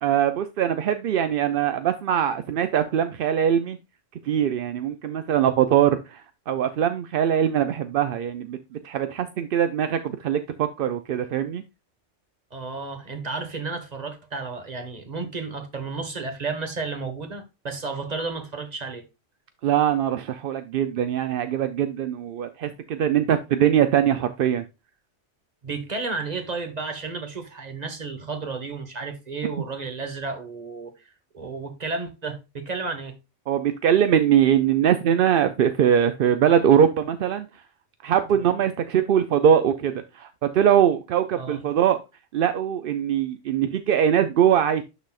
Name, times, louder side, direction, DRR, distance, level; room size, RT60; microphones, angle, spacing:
voice 1, 0.0-3.8 4.2-8.6 8.8-11.6 19.6-24.6 33.5-37.5 38.0-40.3 40.5-42.0 42.3-44.8, right 9 dB, 60° right, 0.6 m, -22 dB
voice 2, 12.5-19.0 23.2-23.3 25.6-31.1 31.3-33.2 41.4-41.6, right 4 dB, 35° right, 1.3 m, -32 dB
11.5 x 4.1 x 2.3 m
omnidirectional pair, 1.3 m